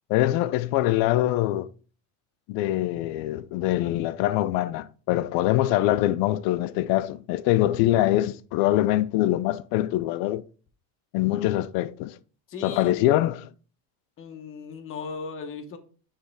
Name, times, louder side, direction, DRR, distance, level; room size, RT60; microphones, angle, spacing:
voice 1, 0.1-1.7 2.5-10.4 11.1-12.2 12.6-13.5, left 15 dB, 55° left, 0.5 m, -24 dB
voice 2, 12.5-12.9 14.2-15.8, left 4 dB, 30° left, 1.0 m, -37 dB
6.5 x 3.3 x 4.7 m
supercardioid pair, 130°, 43 cm